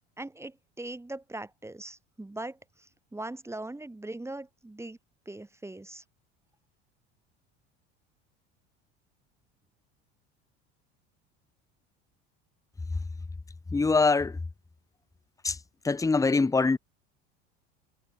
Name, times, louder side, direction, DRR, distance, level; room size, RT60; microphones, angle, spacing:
voice 1, 0.2-5.0 5.2-6.0, right 2 dB, 10° right, 1.3 m, -40 dB
voice 2, 13.7-14.4 15.4-15.6 15.8-16.8, left 4 dB, 10° left, 0.8 m, -23 dB
hypercardioid pair, 80°, 33 cm